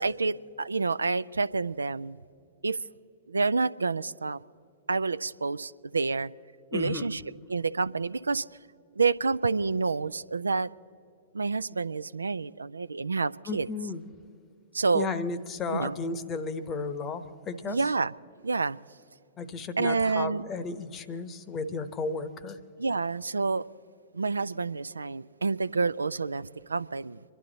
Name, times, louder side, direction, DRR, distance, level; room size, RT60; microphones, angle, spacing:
voice 1, 0.0-2.2 2.6-2.8 3.3-4.4 4.9-6.3 6.7-7.2 7.5-8.4 9.0-10.7 11.3-13.7 14.7-15.1 15.7-16.0 17.7-18.1 18.4-18.8 19.8-20.4 22.8-23.7 24.1-27.2, right 4 dB, 80° right, 0.3 m, -28 dB
voice 2, 6.7-7.1 13.5-14.0 14.9-17.8 19.4-22.6, left 4 dB, 25° left, 0.9 m, -34 dB
26.0 x 11.5 x 3.9 m
figure-of-eight pair, 105°, 0 cm